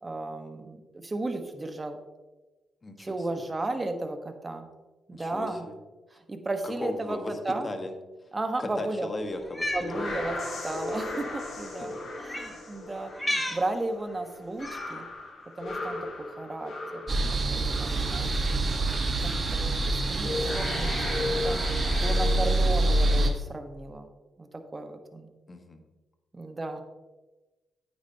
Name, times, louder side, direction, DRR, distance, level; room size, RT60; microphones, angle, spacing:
voice 1, 0.0-2.0 3.0-4.7 5.1-5.6 6.1-7.2 7.4-7.7 8.3-9.1 9.7-15.1 15.6-16.7 17.0-18.6 19.2-20.9 21.2-21.6 21.9-24.1 24.4-25.3 26.3-26.8, right 2 dB, 30° right, 7 dB, 1.2 m, -34 dB
voice 2, 2.8-3.4 5.1-5.7 6.1-6.2 6.6-7.3 7.6-7.9 8.6-10.2 11.9-12.0 25.5-25.8, left 2 dB, 35° left, 6 dB, 1.4 m, -37 dB
sound 1, 9.4-18.3 18.6-19.0 19.8-19.9 20.2-22.6, left 2 dB, 60° left, 2.8 m, -36 dB
Cat, 9.4-9.9 11.0-11.1 12.2-12.6 13.1-13.6 14.6-15.0, left 1 dB, 10° left, 1.6 m, -32 dB
sound 2, 17.1-23.3, right 2 dB, 45° right, 1.3 m, -26 dB
9.0 x 8.7 x 2.9 m, 1.2 s
supercardioid pair, 55°, 0 cm